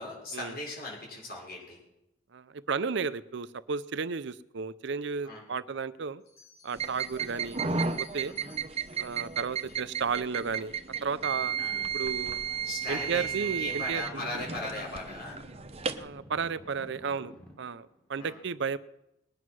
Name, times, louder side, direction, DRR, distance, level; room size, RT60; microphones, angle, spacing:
voice 1, 0.0-1.8 5.2-5.4 8.2-8.5 11.6-11.9 12.6-15.4 18.1-18.4, left 2 dB, 50° left, -2 dB, 5.9 m, -38 dB
voice 2, 2.3-6.2 6.6-8.3 9.0-10.7 11.0-11.6 11.9-12.4 12.9-14.4 16.0-17.3 17.6-18.8, right 5 dB, 60° right, 15 dB, 0.6 m, -33 dB
Bell, 6.2-10.8, left 3 dB, 80° left, 6.8 m, -58 dB
sound 1, 6.7-16.1, right 6 dB, 30° right, 0.8 m, -34 dB
sound 2, 11.1-18.0, equal, 5° left, 2.1 m, -52 dB
20.5 x 9.5 x 6.2 m, 0.87 s
head